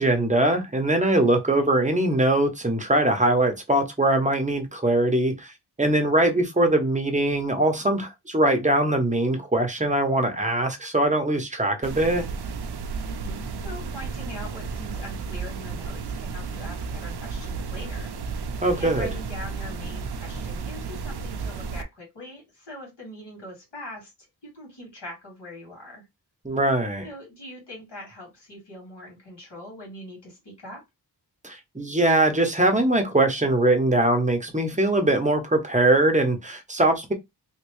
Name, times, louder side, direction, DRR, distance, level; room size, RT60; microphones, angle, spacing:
voice 1, 0.0-5.5 5.8-12.3 18.6-19.1 26.4-27.1 31.4-37.1, right 1 dB, 20° right, 0.8 m, -22 dB
sound 1, 11.8-21.8, right 4 dB, 70° right, 0.5 m, -33 dB
voice 2, 13.0-18.1 18.7-24.1 24.4-26.0 27.0-30.8, left 1 dB, 85° left, 2.1 m, -42 dB
3.1 x 2.8 x 3.0 m
wide cardioid pair, 95°, 40 cm